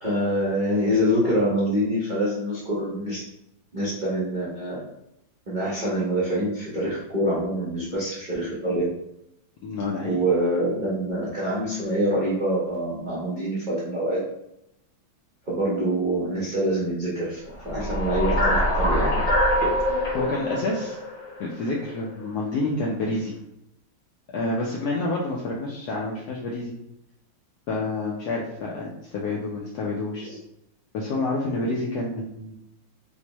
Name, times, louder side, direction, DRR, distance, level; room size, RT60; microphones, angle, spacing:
voice 1, 0.0-3.2 3.7-4.8 5.5-8.9 10.0-14.2 15.5-19.1 30.2-30.4, equal, 60° right, -8 dB, 0.4 m, -25 dB
voice 2, 9.6-10.2 20.1-21.0 21.4-23.3 24.3-26.8 27.7-30.3 30.9-32.6, left 2 dB, 80° left, -3 dB, 0.9 m, -28 dB
sound 1, 17.6-21.9, equal, 40° left, 1.2 m, -24 dB
4.4 x 2.1 x 2.9 m, 0.82 s
omnidirectional pair, 2.2 m